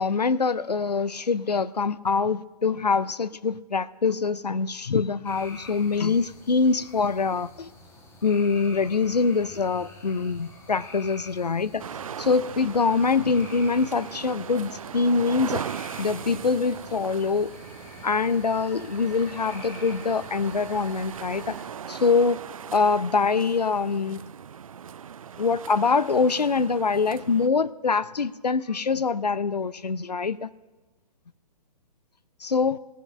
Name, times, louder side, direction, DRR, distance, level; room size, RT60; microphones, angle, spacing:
voice 1, 0.0-7.7 8.2-11.8 12.2-15.6 16.0-17.5 18.0-21.6 21.9-22.4 22.7-24.2 25.4-30.5 32.4-32.8, left 4 dB, 80° left, 17 dB, 0.5 m, -24 dB
sound 1, 5.2-21.7, left 2 dB, 10° left, 1.6 m, -47 dB
sound 2, 11.8-27.5, right 8 dB, 60° right, 0.4 m, -39 dB
19.0 x 6.4 x 8.8 m, 1.2 s
figure-of-eight pair, 125°, 20 cm